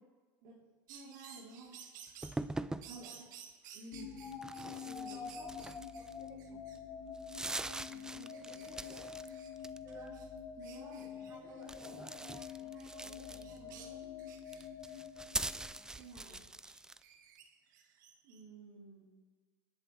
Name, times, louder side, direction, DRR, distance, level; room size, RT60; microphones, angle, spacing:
voice 1, 0.9-1.7 2.6-3.2 3.7-4.2 4.8-5.6 7.9-8.7 10.6-12.1 12.6-14.2 16.0-16.5 18.2-19.2, right 3 dB, 65° right, -6 dB, 3.8 m, -54 dB
sound 1, 0.9-2.4 2.8-6.1 6.4-6.8 7.3-8.0 8.3-10.3 10.6-11.9 12.4-15.0 15.9-18.4, right 8 dB, 90° right, 1.8 m, -56 dB
sound 2, 2.2-2.9 4.3-6.3 6.7-6.8 7.1-9.3 9.6-10.1 11.6-13.7 14.4-17.0, right 2 dB, 5° right, 0.4 m, -42 dB
voice 2, 2.8-3.3 5.1-6.6 8.7-9.0 9.8-10.2 11.1-12.5 13.0-13.2 15.7-16.4, right 1 dB, 25° right, -4 dB, 5.3 m, -57 dB
sound 3, 3.9-16.0, left 7 dB, 30° left, 2.7 m, -47 dB
27.5 x 11.0 x 3.4 m, 1.4 s
supercardioid pair, 120°, 10 cm